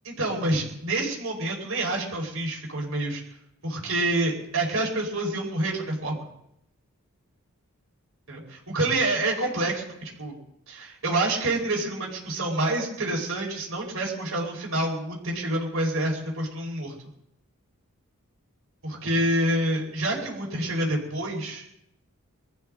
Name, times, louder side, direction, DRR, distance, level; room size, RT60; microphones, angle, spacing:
voice 1, 0.1-3.2 3.6-6.3 8.3-10.4 10.7-16.9 18.8-21.6, right 1 dB, 70° right, -2 dB, 5.1 m, -27 dB
24.0 x 14.5 x 3.9 m, 0.78 s
head